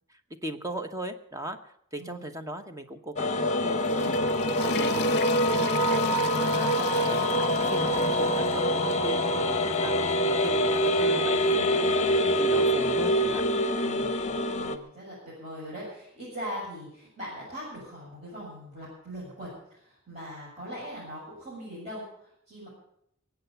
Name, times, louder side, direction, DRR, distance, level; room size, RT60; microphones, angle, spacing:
voice 1, 0.4-5.8 6.3-7.4 7.7-11.4 11.7-11.9 12.2-13.4, right 1 dB, 15° right, 7 dB, 1.0 m, -39 dB
sound 1, 3.2-14.8, equal, 30° left, 1.0 m, -25 dB
Water / Toilet flush, 3.6-8.6 8.9-9.0 9.7-9.8 11.1-11.2, left 6 dB, 50° left, 0.7 m, -38 dB
voice 2, 11.3-12.1 13.8-22.7, equal, 30° right, -9 dB, 7.0 m, -41 dB
22.0 x 8.3 x 6.9 m, 0.73 s
head